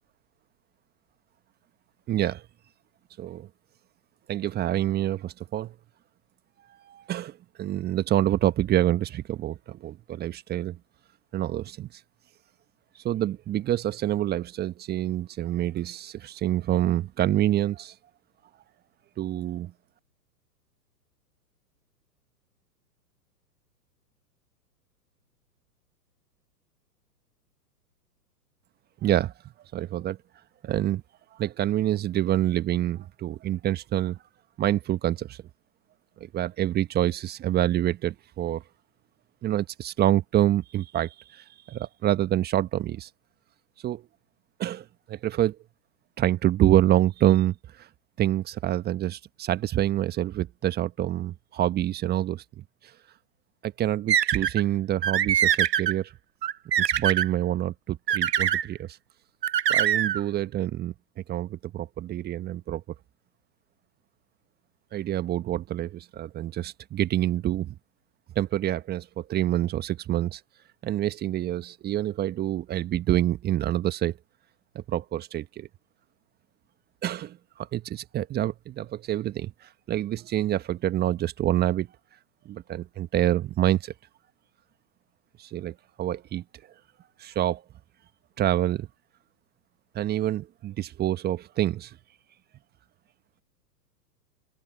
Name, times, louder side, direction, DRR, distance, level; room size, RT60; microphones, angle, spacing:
voice 1, 2.1-2.4 3.2-3.5 4.3-5.7 6.8-10.8 11.3-11.9 13.0-17.9 19.2-19.7 29.0-29.3 29.7-30.2 30.6-31.0 31.4-34.2 34.6-35.4 36.3-38.6 39.4-43.1 43.8-44.0 44.6-45.6 46.2-47.9 48.2-52.6 53.6-56.1 56.8-59.0 59.7-60.9 61.3-62.8 64.9-67.7 68.3-70.4 70.8-74.2 74.7-75.7 77.0-79.5 79.9-81.9 82.4-83.9 85.4-86.4 87.2-87.6 88.4-88.9 89.9-91.9, right 12 dB, 20° right, 1.4 m, -27 dB
sound 1, 54.1-54.6 55.0-55.9 56.4-57.3 58.1-58.7 59.4-60.2, right 10 dB, 75° right, 0.9 m, -23 dB
figure-of-eight pair, 110°, 49 cm